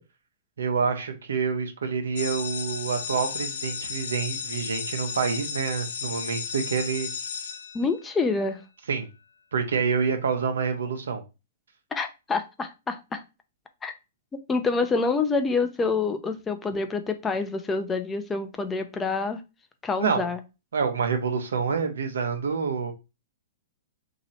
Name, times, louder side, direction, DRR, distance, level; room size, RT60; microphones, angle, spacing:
voice 1, 0.6-7.1 8.9-9.1 9.5-11.2 20.0-20.3 20.7-22.9, right 5 dB, 85° right, 0.9 m, -27 dB
sound 1, 2.2-8.3, left 7 dB, 75° left, 0.5 m, -34 dB
voice 2, 7.7-8.6 11.9-13.2 13.8-13.9 14.5-19.4 19.8-20.4, left 4 dB, 15° left, 0.5 m, -27 dB
3.0 x 2.9 x 4.1 m
hypercardioid pair, 135°, 0 cm